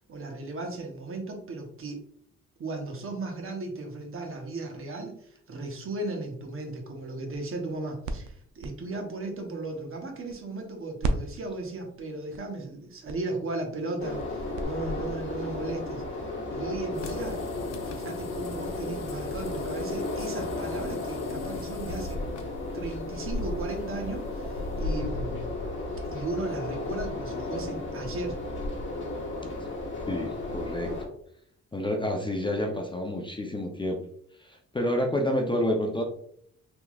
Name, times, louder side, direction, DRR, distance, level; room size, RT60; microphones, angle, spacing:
voice 1, 0.1-2.0 2.6-16.0 16.5-17.4 17.8-22.2 22.7-25.4 26.0-28.4, right 2 dB, 45° right, 2 dB, 0.9 m, -36 dB
sound 1, 7.1-10.7 11.0-14.6, right 2 dB, 90° right, 0.5 m, -37 dB
sound 2, 14.0-31.1, left 2 dB, 40° left, 1.3 m, -34 dB
sound 3, 16.9-24.8, left 7 dB, 60° left, 0.6 m, -48 dB
voice 2, 30.1-30.9 31.7-34.0 34.4-36.0, left 1 dB, 15° left, 2 dB, 0.5 m, -29 dB
3.5 x 2.9 x 2.3 m, 0.66 s
cardioid pair, 90°, 30 cm